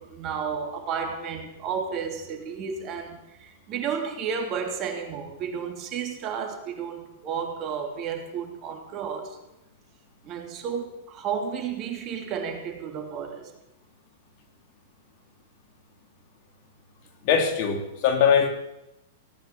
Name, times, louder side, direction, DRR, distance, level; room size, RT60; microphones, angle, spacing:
voice 1, 0.0-9.4 10.2-13.5, right 6 dB, 40° right, 3.2 m, -32 dB
voice 2, 17.2-18.5, left 7 dB, 50° left, 3.2 m, -21 dB
17.5 x 9.9 x 7.7 m
hypercardioid pair, 115°, 0 cm